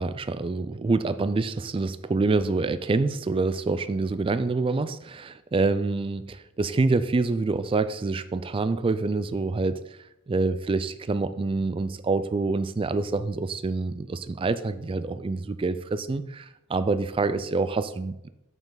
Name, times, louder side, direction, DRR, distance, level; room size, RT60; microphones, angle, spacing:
voice 1, 0.0-9.8 10.3-18.3, right 3 dB, 25° right, 13 dB, 0.3 m, -26 dB
7.3 x 5.4 x 3.9 m, 0.86 s
head